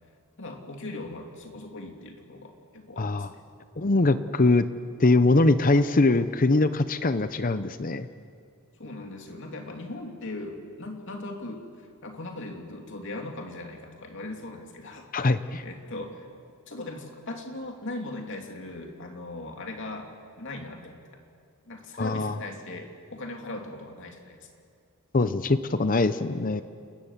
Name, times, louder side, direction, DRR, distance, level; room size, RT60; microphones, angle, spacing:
voice 1, 0.4-3.4 8.8-16.3 16.7-20.1 20.4-20.9 21.7-24.4, left 2 dB, 55° left, 2 dB, 2.9 m, -39 dB
voice 2, 3.0-3.3 3.8-4.7 5.0-8.1 15.1-15.6 22.0-22.3 25.1-26.6, left 2 dB, 40° left, 12 dB, 0.7 m, -22 dB
29.5 x 19.5 x 7.4 m, 2.3 s
head